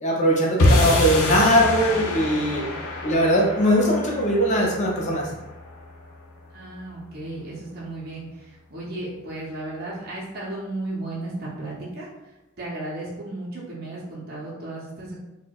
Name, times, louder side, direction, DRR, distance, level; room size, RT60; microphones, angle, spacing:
voice 1, 0.0-2.6 3.0-5.3, equal, 35° left, -2 dB, 0.6 m, -20 dB
sound 1, 0.6-7.0, left 2 dB, 90° left, 0.6 m, -26 dB
voice 2, 6.5-15.2, right 2 dB, 45° right, -6 dB, 0.6 m, -35 dB
4.3 x 2.1 x 2.3 m, 1.0 s
head